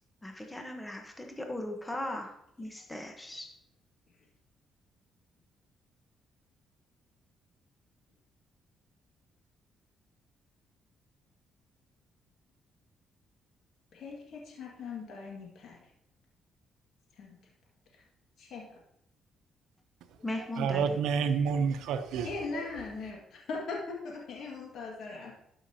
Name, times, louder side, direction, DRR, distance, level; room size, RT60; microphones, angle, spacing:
voice 1, 0.2-3.5 20.2-20.8, left 1 dB, 15° left, 1.1 m, -38 dB
voice 2, 13.9-15.9 17.2-17.4 17.9-18.0 18.4-18.6 22.2-25.3, left 4 dB, 70° left, 1.9 m, -40 dB
voice 3, 20.6-22.6, right 6 dB, 85° right, 0.7 m, -29 dB
12.5 x 5.8 x 2.8 m
cardioid pair, 90°, 0 cm